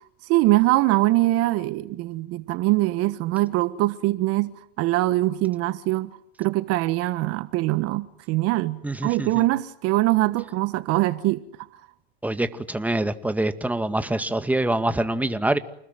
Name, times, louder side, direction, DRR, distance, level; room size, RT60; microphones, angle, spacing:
voice 1, 0.3-6.1 6.4-11.4, right 18 dB, 55° right, 1.4 m, -23 dB
voice 2, 8.8-9.4 12.2-15.6, right 1 dB, 5° right, 2.1 m, -25 dB
29.5 x 20.5 x 9.4 m
hypercardioid pair, 90°, 30 cm